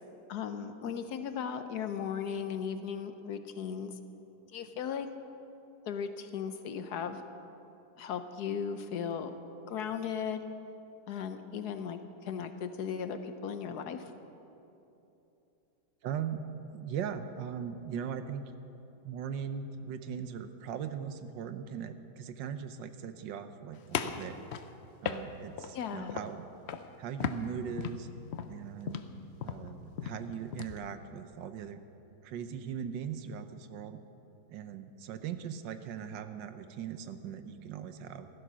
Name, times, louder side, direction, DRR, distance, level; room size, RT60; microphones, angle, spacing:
voice 1, 0.3-3.9 4.5-5.1 5.9-7.2 8.0-9.4 9.7-10.4 11.1-14.1 25.7-26.2, left 7 dB, 65° left, 9 dB, 1.2 m, -36 dB
voice 2, 16.0-18.4 19.0-24.5 25.0-26.5 27.0-28.1 28.5-29.1 29.4-31.8 32.2-34.0 34.5-38.3, right 8 dB, 80° right, 10 dB, 1.4 m, -39 dB
sound 1, 23.9-25.8 26.1-26.4 26.7-26.9 27.2-30.8, left 8 dB, 85° left, 0.5 m, -37 dB
16.0 x 13.0 x 6.1 m, 2.9 s
omnidirectional pair, 2.0 m